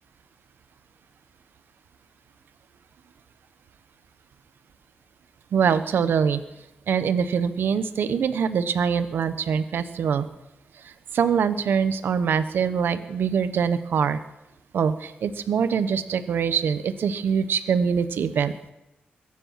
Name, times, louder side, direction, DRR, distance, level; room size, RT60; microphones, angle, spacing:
voice 1, 5.5-6.4 6.9-10.3 10.8-14.2 14.7-18.5, right 7 dB, 75° right, 11 dB, 1.0 m, -24 dB
22.5 x 9.9 x 5.8 m, 0.91 s
wide cardioid pair, 160°, 4 cm